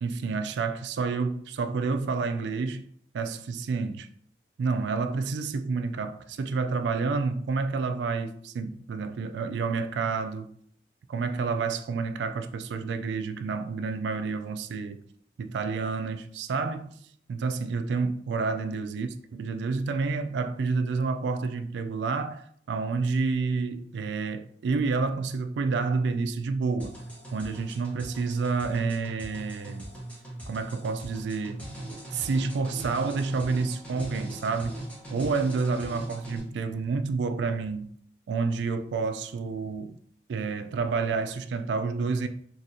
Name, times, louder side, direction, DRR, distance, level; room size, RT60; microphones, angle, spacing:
voice 1, 0.0-2.9 3.1-4.1 4.6-10.5 11.1-15.0 15.4-17.0 17.3-19.1 19.4-27.0 27.3-29.9 30.5-31.7 32.1-34.8 35.1-37.9 38.3-40.0 40.3-42.3, right 4 dB, 75° right, 0.3 m, -29 dB
sound 1, 26.8-36.4, right 1 dB, 10° left, 0.8 m, -40 dB
3.9 x 2.5 x 2.6 m
head